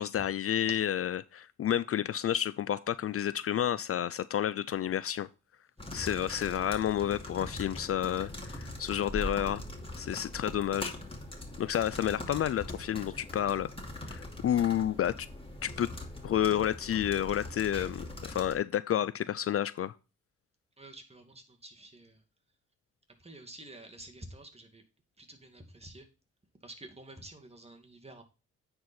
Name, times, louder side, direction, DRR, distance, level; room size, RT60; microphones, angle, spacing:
voice 1, 0.0-5.3 5.9-9.6 10.0-10.9 11.6-13.7 14.1-15.3 15.6-15.9 16.2-19.9, left 10 dB, 50° left, 16 dB, 0.4 m, -30 dB
keyboard keys, 5.8-18.6, left 1 dB, 20° left, 2.5 m, -42 dB
voice 2, 20.8-22.2 23.2-24.8 25.2-26.1 26.6-28.2, right 1 dB, 20° right, 3 dB, 2.2 m, -50 dB
9.3 x 4.5 x 4.3 m, 0.32 s
supercardioid pair, 50°, 29 cm